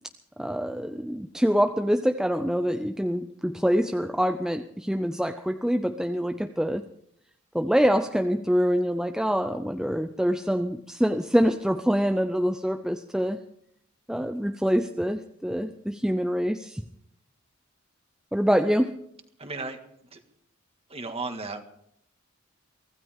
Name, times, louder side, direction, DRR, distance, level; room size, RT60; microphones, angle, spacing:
voice 1, 0.4-6.8 7.5-13.4 14.1-16.8 18.3-19.0, equal, 5° right, 7 dB, 0.5 m, -25 dB
voice 2, 19.4-19.8 20.1-20.2 20.9-21.6, right 3 dB, 30° right, 6 dB, 1.9 m, -34 dB
24.0 x 16.0 x 3.6 m, 0.70 s
head